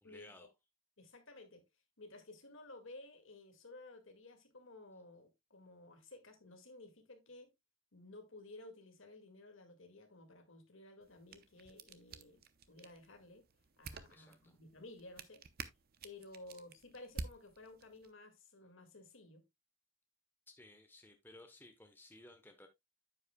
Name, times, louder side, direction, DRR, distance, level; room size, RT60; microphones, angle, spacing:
voice 1, 0.0-0.5 14.1-14.6 20.5-22.7, left 2 dB, 10° left, 0.9 m, -58 dB
voice 2, 1.0-1.6 2.0-7.5 7.9-13.5 13.8-15.4 16.0-19.4, left 2 dB, 65° left, 2.0 m, -55 dB
sound 1, 11.0-18.1, right 4 dB, 45° right, 0.7 m, -51 dB
9.7 x 8.0 x 2.2 m
head